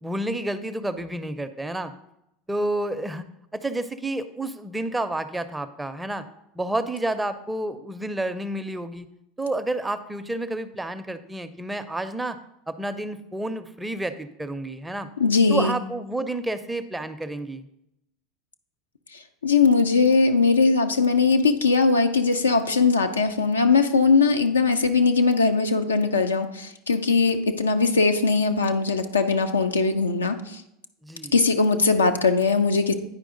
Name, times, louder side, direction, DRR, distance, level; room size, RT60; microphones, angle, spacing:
voice 1, 0.0-1.9 2.5-3.2 3.5-6.3 6.6-9.1 9.4-12.4 12.7-15.1 15.5-17.7 31.0-31.3, right 1 dB, 10° right, 10 dB, 0.5 m, -30 dB
voice 2, 15.2-15.8 19.4-30.6 31.3-32.9, left 4 dB, 85° left, 6 dB, 0.4 m, -20 dB
9.6 x 4.8 x 3.8 m, 0.83 s
figure-of-eight pair, 80°, 0 cm